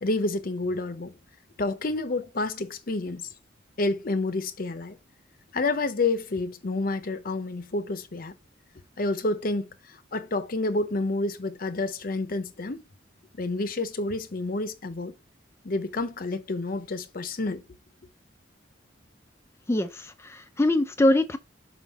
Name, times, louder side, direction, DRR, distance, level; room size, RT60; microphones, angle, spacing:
voice 1, 0.0-1.2 1.6-3.3 3.8-5.0 5.5-8.3 9.0-12.8 13.4-15.1 15.6-17.6, left 2 dB, 50° left, 0.7 m, -29 dB
voice 2, 19.7-21.4, left 1 dB, 15° left, 0.4 m, -23 dB
5.5 x 5.0 x 3.5 m
head